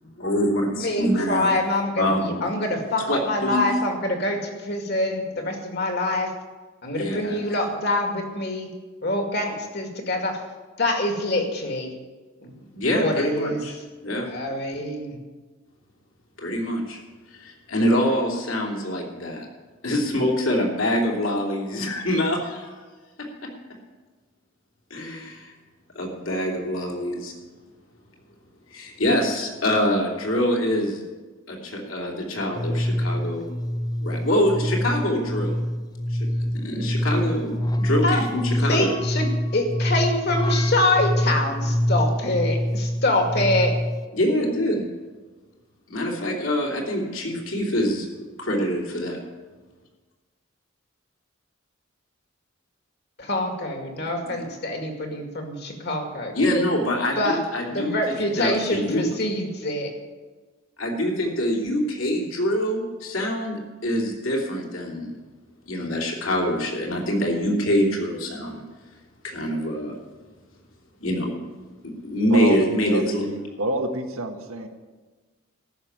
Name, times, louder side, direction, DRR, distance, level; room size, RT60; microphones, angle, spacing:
voice 1, 0.0-1.5 2.0-2.5 3.1-3.7 6.9-7.4 12.7-13.7 14.0-14.3 16.4-17.0 17.3-19.4 19.8-22.8 24.9-25.5 25.9-27.3 28.7-31.0 31.5-33.4 34.0-35.6 36.1-38.9 44.1-44.8 45.9-48.1 48.4-49.2 56.3-58.0 58.4-59.0 60.8-65.2 65.7-68.6 69.2-69.9 71.0-71.4 71.8-73.2, equal, 70° left, -1 dB, 3.2 m, -25 dB
voice 2, 0.8-6.3 6.8-8.7 9.0-10.4 10.8-11.9 12.4-13.6 14.3-15.2 38.0-38.2 38.7-39.3 39.5-43.8 53.2-56.4 57.2-57.4 57.7-59.9, left 1 dB, 50° left, 4 dB, 2.2 m, -25 dB
sound 1, 32.5-44.1, equal, 20° left, 0.4 m, -25 dB
voice 3, 72.3-74.7, right 1 dB, 85° right, 5 dB, 1.5 m, -28 dB
14.0 x 6.3 x 9.5 m, 1.3 s
head